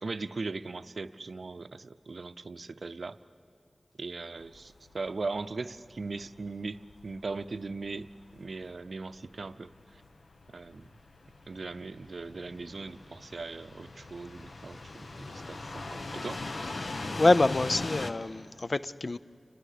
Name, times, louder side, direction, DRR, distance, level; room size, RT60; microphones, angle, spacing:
voice 1, 0.0-3.2 4.0-10.0 10.5-10.9 11.5-16.4, right 3 dB, 75° right, 0.6 m, -39 dB
sound 1, 4.4-18.1, left 2 dB, 75° left, 1.0 m, -41 dB
voice 2, 16.8-19.2, left 2 dB, 55° left, 0.5 m, -26 dB
29.5 x 22.0 x 6.6 m
wide cardioid pair, 65°, 0 cm